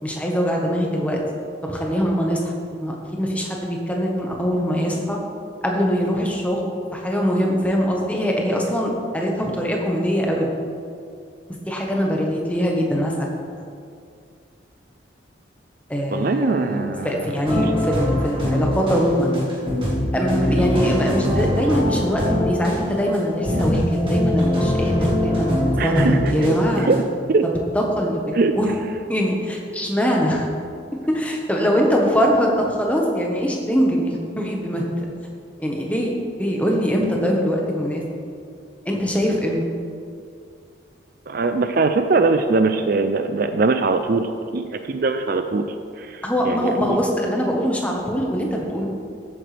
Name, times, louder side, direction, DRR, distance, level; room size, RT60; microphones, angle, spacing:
voice 1, 0.0-1.2 1.6-2.5 2.8-5.2 5.6-6.6 6.9-10.5 11.7-13.3 15.9-19.3 20.1-26.9 27.7-28.7 29.1-30.5 31.1-35.1 35.6-36.1 36.4-38.0 38.8-39.6 46.2-48.8, equal, 5° left, -1 dB, 1.2 m, -22 dB
voice 2, 16.1-17.7 25.8-26.2 26.8-27.4 28.3-28.5 39.3-39.4 41.3-47.0, right 3 dB, 50° right, 8 dB, 0.4 m, -22 dB
sound 1, 17.5-27.0, left 1 dB, 25° right, 2.1 m, -23 dB
13.5 x 9.0 x 3.4 m, 2.4 s
head